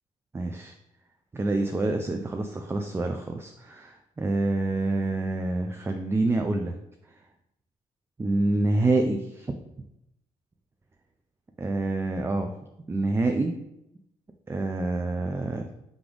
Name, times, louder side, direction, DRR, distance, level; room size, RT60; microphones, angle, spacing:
voice 1, 0.3-0.7 1.3-6.7 8.2-9.5 11.6-12.5 12.9-13.6 14.5-15.7, right 2 dB, 15° right, 5 dB, 0.4 m, -27 dB
3.7 x 3.5 x 3.4 m, 0.85 s
supercardioid pair, 75°, 14 cm